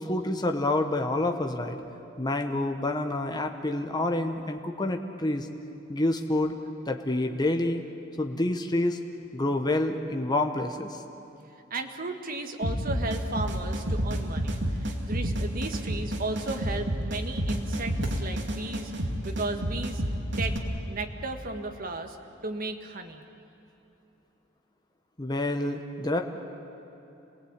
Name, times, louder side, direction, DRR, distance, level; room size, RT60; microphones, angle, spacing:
voice 1, 0.0-1.8 2.2-5.5 5.9-6.5 6.8-7.8 8.2-9.0 9.3-11.0 25.2-26.2, left 2 dB, 20° left, 5 dB, 1.2 m, -28 dB
voice 2, 11.7-18.9 19.2-20.0 20.4-20.6 20.9-22.2 22.4-23.2, right 2 dB, 45° right, 5 dB, 1.7 m, -35 dB
sound 1, 12.6-20.6, right 1 dB, 65° right, 2.5 m, -29 dB
27.5 x 19.0 x 8.9 m, 3.0 s
head